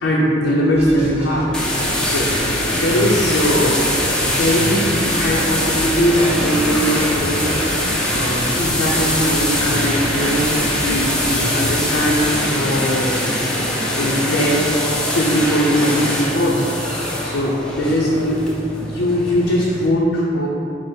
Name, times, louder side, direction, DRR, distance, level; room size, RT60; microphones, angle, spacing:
voice 1, 0.0-1.5 2.0-3.9 4.2-7.6 8.1-13.2 14.0-14.7 15.0-16.6 17.2-18.4 18.8-20.5, equal, 70° left, -5 dB, 0.5 m, -20 dB
sound 1, 0.7-12.0, equal, 35° right, 0.8 m, -31 dB
sound 2, 1.5-19.9, left 1 dB, 5° left, 0.4 m, -22 dB
4.3 x 2.0 x 4.6 m, 2.7 s
head